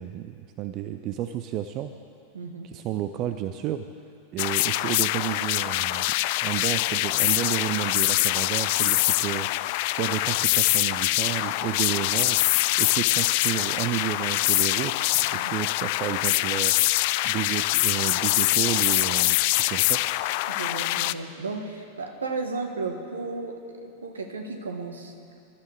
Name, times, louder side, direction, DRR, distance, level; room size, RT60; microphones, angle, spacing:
voice 1, 0.0-1.9 2.6-3.8 4.3-6.2 6.4-9.5 10.0-12.4 12.8-14.9 15.2-16.7 17.2-20.0, right 12 dB, 40° right, 9 dB, 0.6 m, -31 dB
voice 2, 2.3-2.7 15.3-15.5 20.5-25.4, right 3 dB, 70° right, 4 dB, 1.6 m, -34 dB
sound 1, 4.4-21.1, left 19 dB, 50° left, 0.3 m, -24 dB
27.0 x 13.0 x 3.5 m, 2.5 s
figure-of-eight pair, 90°, 0 cm